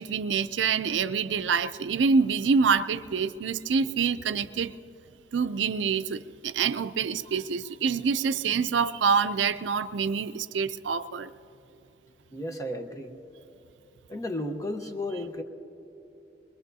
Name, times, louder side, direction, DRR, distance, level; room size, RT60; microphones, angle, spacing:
voice 1, 0.0-4.7 5.3-11.3, right 5 dB, 85° right, 0.4 m, -26 dB
voice 2, 12.3-13.1 14.1-15.4, left 1 dB, 20° left, 0.9 m, -33 dB
22.0 x 22.0 x 2.7 m
head